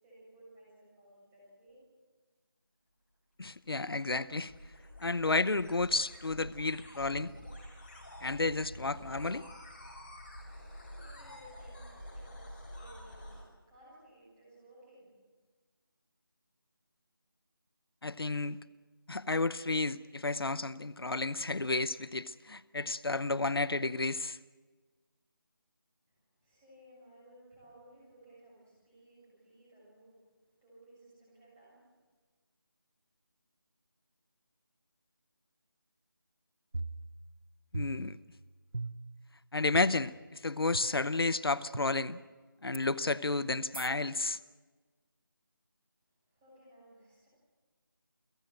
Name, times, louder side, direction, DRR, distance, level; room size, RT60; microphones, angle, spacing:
voice 1, 0.0-1.8 10.3-15.1 26.1-31.9 46.2-47.3, right 1 dB, 10° right, -7 dB, 7.0 m, -59 dB
voice 2, 3.4-4.5 5.0-7.3 8.2-9.4 18.0-18.6 19.1-24.4 37.7-38.2 39.5-42.2 42.6-44.4, left 3 dB, 80° left, 15 dB, 0.8 m, -32 dB
sound 1, 3.6-13.4, equal, 25° left, 6.5 m, -48 dB
sound 2, 36.7-37.4 37.7-38.3 38.7-39.2 39.7-39.8 40.7-40.8 41.7-41.8 42.7-42.8 43.7-43.9, right 2 dB, 80° right, 1.2 m, -39 dB
29.5 x 17.5 x 7.7 m, 1.4 s
figure-of-eight pair, 175°, 12 cm